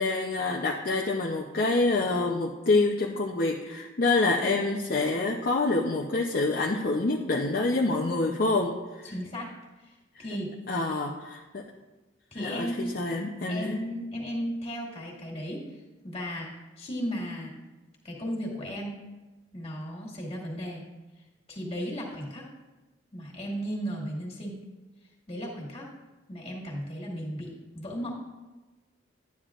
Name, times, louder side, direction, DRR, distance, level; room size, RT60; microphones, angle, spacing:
voice 1, 0.0-9.1 10.1-10.2 10.7-11.6 12.4-13.8, left 3 dB, 50° left, -1 dB, 0.7 m, -27 dB
voice 2, 9.0-9.5 9.8-9.9 10.2-10.5 12.3-13.0 13.5-15.6 16.0-16.5 16.8-17.5 18.0-18.9 19.5-20.8 21.5-22.4 23.1-24.6 25.3-25.9 26.3-28.2, equal, 35° left, -4 dB, 2.2 m, -35 dB
11.5 x 9.4 x 2.5 m, 1.2 s
head